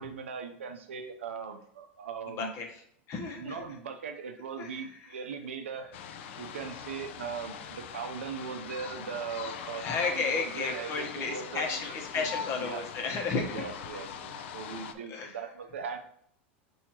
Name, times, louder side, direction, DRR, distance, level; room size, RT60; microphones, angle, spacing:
voice 1, 0.0-2.5 3.4-5.9 6.4-11.7 12.1-12.8 13.5-16.0, right 6 dB, 85° right, 6 dB, 0.5 m, -39 dB
voice 2, 2.3-2.8 3.1-3.6 4.6-5.1 9.8-13.7 15.1-15.4, left 4 dB, 45° left, 2 dB, 1.0 m, -33 dB
sound 1, 5.9-14.9, left 7 dB, 70° left, 0.4 m, -42 dB
4.4 x 2.7 x 4.3 m, 0.67 s
hypercardioid pair, 100°, 6 cm